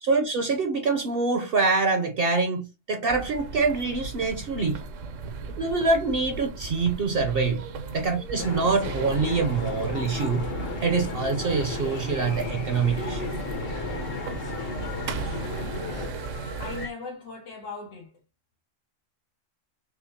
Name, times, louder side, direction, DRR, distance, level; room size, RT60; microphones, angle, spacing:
voice 1, 0.0-4.8 5.6-7.6 7.9-10.5 10.8-13.3, right 4 dB, 60° right, 0.7 m, -25 dB
sound 1, 3.1-16.9, right 4 dB, 80° right, 1.0 m, -37 dB
sound 2, 8.4-16.1, left 2 dB, 55° left, 1.1 m, -33 dB
sound 3, 11.6-16.9, left 4 dB, 35° left, 0.7 m, -45 dB
voice 2, 16.6-18.1, left 4 dB, 80° left, 1.4 m, -39 dB
5.7 x 2.1 x 2.6 m
omnidirectional pair, 1.3 m